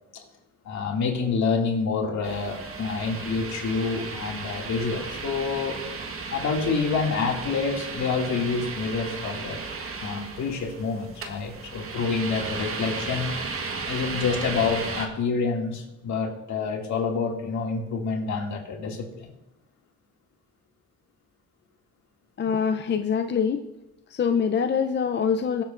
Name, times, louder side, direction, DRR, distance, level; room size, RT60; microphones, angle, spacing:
voice 1, 0.6-5.8 6.3-9.6 10.0-13.3 13.6-19.3, left 4 dB, 70° left, 0 dB, 2.3 m, -27 dB
sound 1, 2.2-15.1, right 4 dB, 45° right, 1.4 m, -35 dB
voice 2, 22.4-23.6 24.1-25.6, left 6 dB, 35° left, 7 dB, 0.6 m, -24 dB
22.0 x 7.5 x 2.5 m, 0.93 s
cardioid pair, 90°, 30 cm